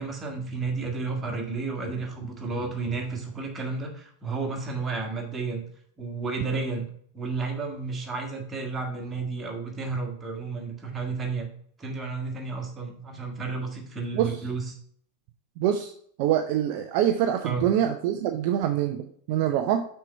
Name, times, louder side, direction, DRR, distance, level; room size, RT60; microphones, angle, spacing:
voice 1, 0.0-5.6 6.0-6.8 7.1-11.5 11.8-14.6 17.4-17.7, right 4 dB, 15° right, 0 dB, 1.8 m, -32 dB
voice 2, 15.6-15.9 16.2-19.9, right 10 dB, 45° right, 6 dB, 0.5 m, -25 dB
6.0 x 4.5 x 5.6 m, 0.62 s
figure-of-eight pair, 90°, 0 cm